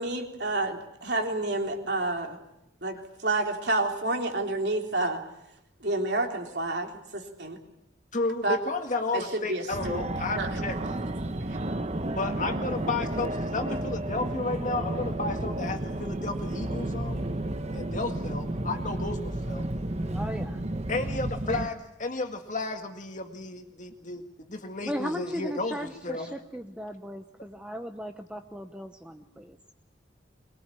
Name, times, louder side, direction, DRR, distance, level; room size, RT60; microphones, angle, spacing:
voice 1, 0.0-2.4 2.8-5.2 5.8-7.6 8.4-8.6 9.1-10.6, right 2 dB, 60° right, 2 dB, 3.7 m, -29 dB
voice 2, 8.1-10.8 12.2-17.3 17.7-19.7 20.9-26.4, left 3 dB, 40° left, 5 dB, 1.9 m, -32 dB
Fixed-wing aircraft airplane, 9.7-21.7, right 1 dB, 35° right, 1.1 m, -32 dB
voice 3, 20.0-20.6 24.8-29.6, equal, 5° right, 5 dB, 0.9 m, -37 dB
23.5 x 21.5 x 8.6 m, 0.82 s
head